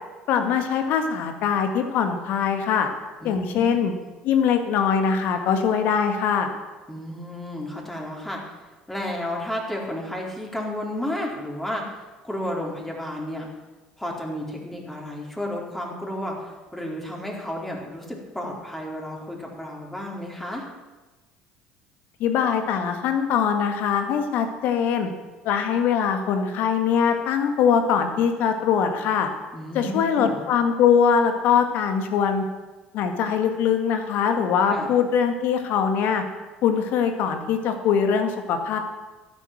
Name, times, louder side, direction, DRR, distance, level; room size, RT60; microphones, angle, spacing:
voice 1, 0.3-2.9 3.2-3.9 4.2-6.5 22.2-25.1 25.4-29.3 29.7-32.4 32.9-36.2 36.6-38.8, left 7 dB, 60° left, 6 dB, 1.9 m, -22 dB
voice 2, 3.2-3.7 6.9-8.6 8.9-13.5 14.0-20.6 29.5-30.4 34.7-34.9, left 1 dB, 10° left, -2 dB, 4.2 m, -32 dB
13.0 x 9.4 x 7.5 m, 1.2 s
hypercardioid pair, 65°, 4 cm